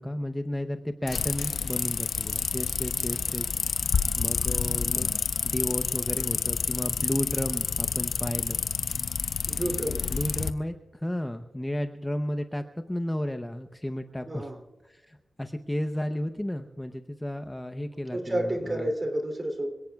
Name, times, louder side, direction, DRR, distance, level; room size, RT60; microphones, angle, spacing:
voice 1, 0.0-3.8 4.2-5.1 5.4-8.6 10.1-14.5 14.8-18.9, left 1 dB, 10° left, 7 dB, 0.7 m, -33 dB
sound 1, 1.1-10.5, left 6 dB, 85° left, 0.7 m, -29 dB
voice 2, 9.5-10.0 14.3-14.6 18.1-19.7, right 1 dB, 30° right, 5 dB, 2.9 m, -30 dB
26.0 x 17.5 x 2.3 m, 1.1 s
wide cardioid pair, 115°, 0 cm